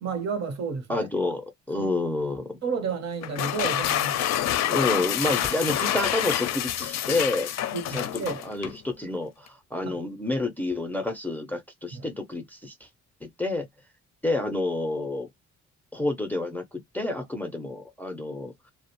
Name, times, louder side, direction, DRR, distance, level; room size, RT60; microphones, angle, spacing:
voice 1, 0.0-1.1 1.8-1.9 2.6-4.2 7.7-8.4 9.8-9.9 11.9-12.0, right 5 dB, 60° right, 0.9 m, -31 dB
voice 2, 0.9-2.6 4.7-7.5 7.9-12.7 13.2-13.7 14.2-15.3 15.9-18.5, left 2 dB, 5° left, 0.5 m, -29 dB
sound 1, 3.2-8.8, left 11 dB, 60° left, 0.4 m, -27 dB
2.3 x 2.1 x 2.8 m
cardioid pair, 90°, 30 cm